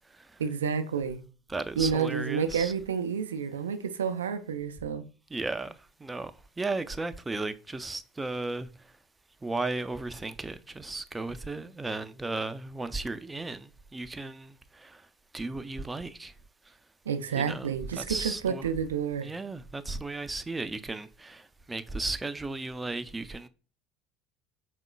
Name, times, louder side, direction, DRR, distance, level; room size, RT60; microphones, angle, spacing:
voice 1, 0.4-1.2 1.8-5.0 17.1-19.3, right 7 dB, 80° right, 0.4 m, -30 dB
voice 2, 1.5-2.7 5.3-6.3 6.6-8.7 9.4-15.0 15.3-16.3 17.4-18.6 19.2-23.5, right 3 dB, 15° right, 0.4 m, -35 dB
4.9 x 3.6 x 2.2 m
figure-of-eight pair, 65°, 0 cm